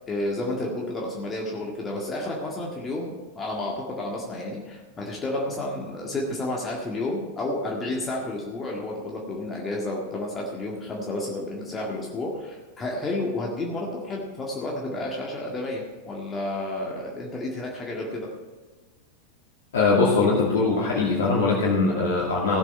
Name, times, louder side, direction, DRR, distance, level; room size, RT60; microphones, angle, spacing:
voice 1, 0.1-18.3, left 2 dB, 20° left, -2 dB, 1.8 m, -31 dB
voice 2, 19.7-22.6, left 3 dB, 60° left, -5 dB, 2.5 m, -21 dB
16.0 x 7.4 x 5.4 m, 1.3 s
figure-of-eight pair, 90°, 0 cm